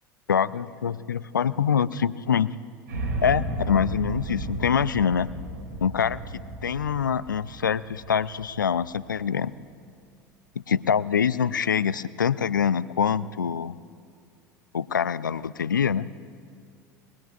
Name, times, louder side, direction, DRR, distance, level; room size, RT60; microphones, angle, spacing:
voice 1, 0.3-2.5 3.2-5.3 5.8-9.5 10.7-13.8 14.7-16.1, left 7 dB, 90° left, 18 dB, 0.4 m, -25 dB
sound 1, 2.9-9.0, right 2 dB, 75° right, 2.5 m, -34 dB
22.0 x 22.0 x 2.4 m, 2.4 s
hypercardioid pair, 75°, 10 cm